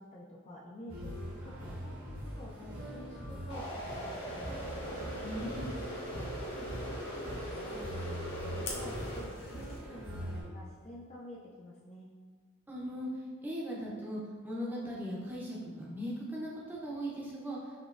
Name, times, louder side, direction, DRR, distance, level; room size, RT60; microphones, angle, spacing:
voice 1, 0.0-5.0 5.9-12.1, left 1 dB, 30° left, -4 dB, 0.4 m, -49 dB
sound 1, 0.9-10.4, equal, 80° right, 1.0 m, -42 dB
sound 2, 3.5-9.2, equal, 90° left, 1.1 m, -41 dB
voice 2, 5.2-5.7 12.7-13.1 13.4-17.6, equal, 10° right, -5 dB, 0.7 m, -39 dB
Fire, 8.6-9.8, left 3 dB, 65° left, 0.7 m, -44 dB
5.1 x 3.0 x 2.5 m, 1.5 s
head